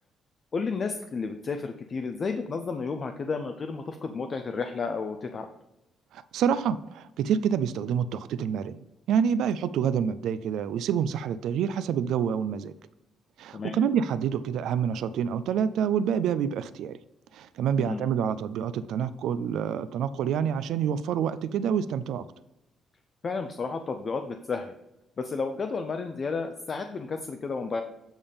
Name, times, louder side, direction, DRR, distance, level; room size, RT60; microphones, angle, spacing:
voice 1, 0.5-5.5 13.5-13.8 17.8-18.0 23.2-24.7 25.2-27.8, left 4 dB, 45° left, 7 dB, 0.6 m, -32 dB
voice 2, 6.1-8.8 9.1-12.7 13.4-17.0 17.3-22.2, right 8 dB, 80° right, 14 dB, 0.3 m, -27 dB
8.8 x 3.5 x 5.4 m, 0.93 s
cardioid pair, 90°, 0 cm